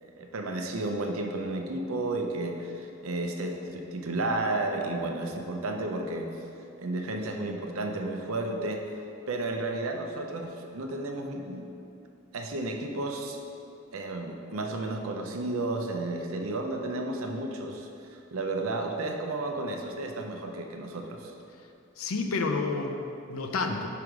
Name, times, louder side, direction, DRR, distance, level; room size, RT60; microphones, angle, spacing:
voice 1, 0.0-6.4 6.8-8.8 9.3-11.7 12.3-13.4 13.9-21.3, right 2 dB, 90° right, 3 dB, 0.6 m, -32 dB
voice 2, 22.0-23.9, left 3 dB, 85° left, 5 dB, 0.5 m, -30 dB
4.9 x 4.7 x 5.0 m, 2.7 s
head